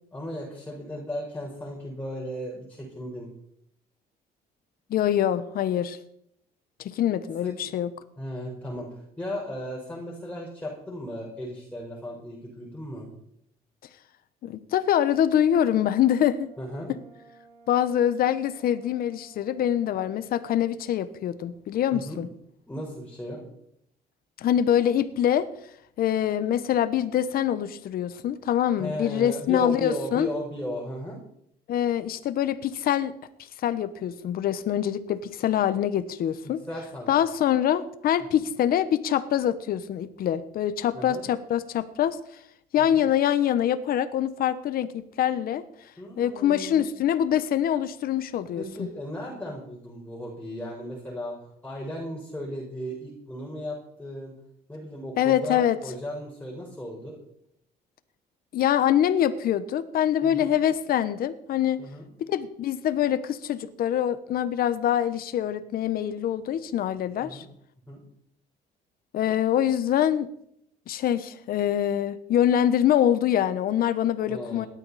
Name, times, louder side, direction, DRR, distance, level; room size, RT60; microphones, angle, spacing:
voice 1, 0.1-3.3 7.4-7.7 8.2-13.1 16.6-16.9 21.9-22.2 22.7-23.4 28.8-31.2 36.4-37.2 38.3-38.4 40.9-41.2 42.8-43.0 46.0-46.9 48.6-51.4 51.6-54.3 54.7-57.2 60.2-60.5 61.8-62.1 67.2-67.5 67.9-68.0 74.3-74.7, equal, 10° left, -3 dB, 4.7 m, -36 dB
voice 2, 4.9-6.0 6.8-7.9 14.4-16.5 17.7-22.3 24.4-25.5 26.0-30.3 31.7-33.1 33.6-36.6 37.1-42.2 42.7-45.6 46.2-48.9 55.2-55.8 58.5-61.8 62.2-67.4 69.1-70.3 70.9-74.7, left 10 dB, 60° left, 14 dB, 1.1 m, -24 dB
Brass instrument, 16.1-20.2, right 2 dB, 85° right, 4.4 m, -55 dB
18.0 x 12.5 x 4.2 m, 0.73 s
cardioid pair, 110°, 17 cm